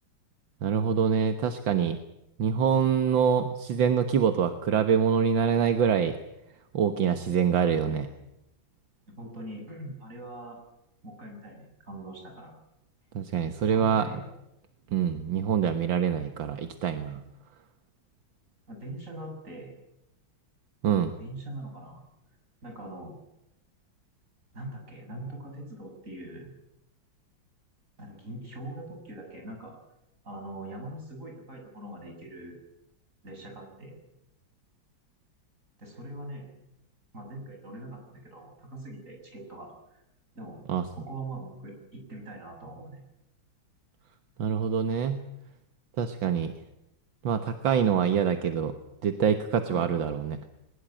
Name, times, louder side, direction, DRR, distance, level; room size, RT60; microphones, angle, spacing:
voice 1, 0.6-2.0 2.4-6.2 6.7-8.1 13.2-14.1 14.9-17.2 20.8-21.1 40.7-40.8 44.4-45.2 46.0-46.5 47.2-48.7 49.0-50.4, right 7 dB, 75° right, 8 dB, 2.0 m, -25 dB
voice 2, 9.2-10.6 11.0-12.6 13.7-14.3 18.7-19.7 21.2-22.0 22.6-23.2 24.5-26.5 28.0-29.8 30.2-32.6 33.2-34.0 35.8-36.5 37.1-40.0 40.4-40.6 40.9-43.0 49.7-50.1, right 1 dB, 40° right, 2 dB, 7.4 m, -42 dB
21.5 x 20.5 x 9.0 m, 0.85 s
omnidirectional pair, 2.1 m